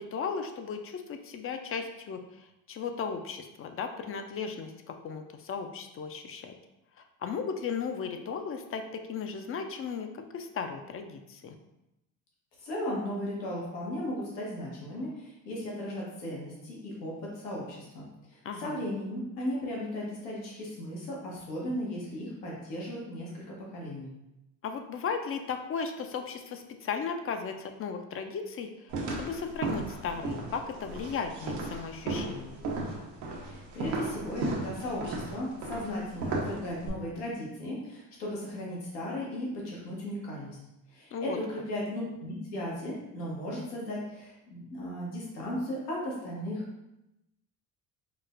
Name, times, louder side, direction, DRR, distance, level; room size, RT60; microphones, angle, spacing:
voice 1, 0.0-6.5 7.0-11.6 18.4-18.8 24.6-28.9 29.2-32.6 41.1-41.4, left 6 dB, 30° left, 6 dB, 0.4 m, -36 dB
voice 2, 12.6-24.1 33.4-40.6 40.9-46.6, left 1 dB, 85° left, -4 dB, 1.0 m, -36 dB
sound 1, 28.9-36.9, right 2 dB, 85° right, 0.8 m, -35 dB
4.8 x 2.1 x 2.4 m, 0.91 s
hypercardioid pair, 65°, 47 cm